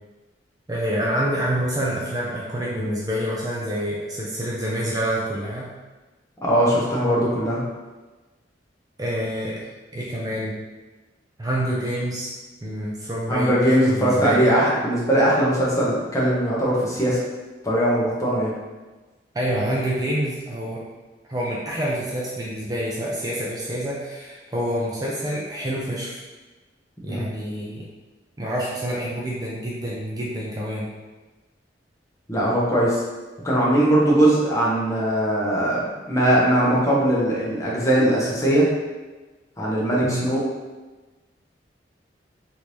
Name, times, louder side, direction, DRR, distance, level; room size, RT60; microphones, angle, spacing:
voice 1, 0.7-5.7 9.0-9.7 9.9-10.5 11.4-12.3 12.6-14.6 19.3-20.8 21.3-26.2 27.0-27.9 28.4-30.9 40.0-40.3, equal, 20° right, -5 dB, 0.4 m, -27 dB
voice 2, 6.4-7.6 13.3-17.2 17.6-18.5 27.1-27.2 32.3-33.0 33.4-38.7 39.6-40.4, right 1 dB, 20° left, -6 dB, 0.8 m, -20 dB
3.5 x 2.6 x 3.0 m, 1.2 s
head